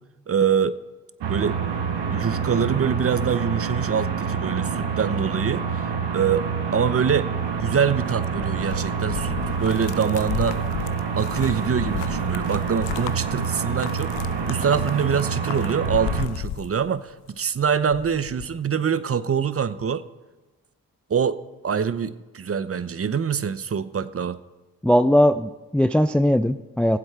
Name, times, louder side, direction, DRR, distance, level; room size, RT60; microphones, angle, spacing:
voice 1, 0.3-0.7 1.3-1.6 2.1-5.8 6.1-6.5 6.7-7.3 7.6-10.6 11.2-14.2 14.5-20.0 21.1-21.4 21.6-24.4, right 7 dB, 35° right, 15 dB, 0.7 m, -24 dB
sound 1, 1.2-16.3, right 6 dB, 75° right, 1.1 m, -27 dB
sound 2, 7.4-17.3 17.6-18.5, left 11 dB, 75° left, 0.7 m, -35 dB
voice 2, 24.8-27.0, equal, 5° left, 12 dB, 0.4 m, -19 dB
18.0 x 7.8 x 3.7 m, 1.2 s
supercardioid pair, 40°, 43 cm